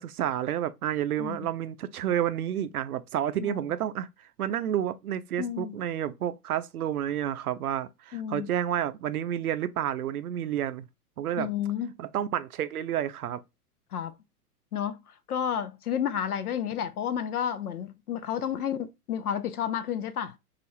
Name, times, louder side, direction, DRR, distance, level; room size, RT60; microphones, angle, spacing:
voice 1, 0.0-4.1 4.4-10.9 11.2-11.5 12.0-13.4, right 10 dB, 65° right, 0.6 m, -30 dB
voice 2, 1.2-1.5 5.4-5.8 8.1-8.5 11.4-11.9 13.9-14.1 14.7-20.3, left 9 dB, 70° left, 0.7 m, -31 dB
4.9 x 2.4 x 2.6 m
figure-of-eight pair, 105°, 47 cm